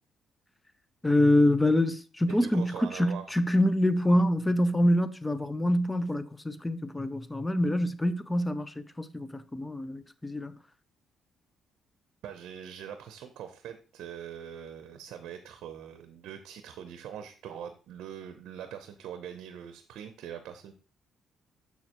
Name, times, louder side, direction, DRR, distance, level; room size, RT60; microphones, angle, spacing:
voice 1, 1.0-10.5, left 1 dB, 10° left, 0.6 m, -26 dB
voice 2, 2.3-3.3 12.2-20.7, right 9 dB, 80° right, 0.7 m, -42 dB
7.0 x 6.5 x 2.9 m
cardioid pair, 90°, 0 cm